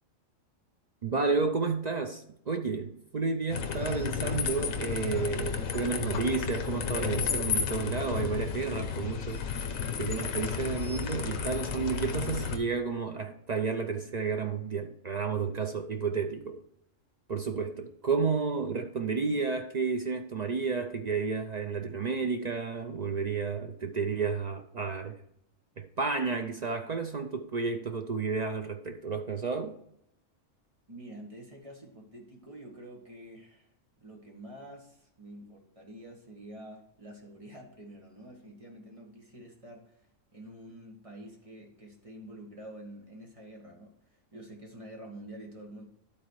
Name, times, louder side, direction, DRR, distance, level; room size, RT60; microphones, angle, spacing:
voice 1, 1.0-9.4 9.7-16.6 17.3-25.2 25.8-29.8, right 4 dB, 55° right, 0.4 m, -31 dB
sound 1, 3.5-12.6, left 7 dB, 90° left, 1.2 m, -32 dB
voice 2, 30.9-33.7 34.0-40.1 40.3-45.8, right 1 dB, 25° right, 1.7 m, -48 dB
12.0 x 4.1 x 4.7 m
omnidirectional pair, 1.4 m